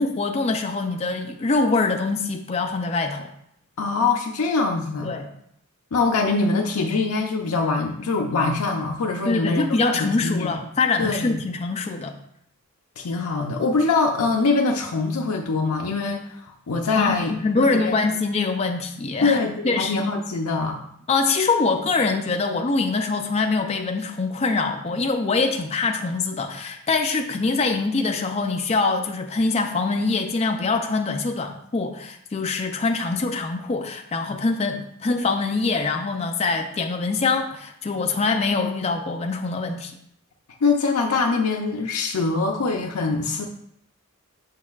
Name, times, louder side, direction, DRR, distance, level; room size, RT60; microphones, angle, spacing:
voice 1, 0.0-3.3 5.0-5.3 9.3-12.1 17.0-19.4 19.6-20.0 21.1-39.9, left 3 dB, 30° left, 4 dB, 0.4 m, -24 dB
voice 2, 3.8-5.2 5.9-10.5 11.0-11.4 13.0-18.0 19.2-20.8 40.6-43.5, left 3 dB, 80° left, 1 dB, 0.5 m, -23 dB
6.5 x 6.1 x 2.4 m, 0.71 s
head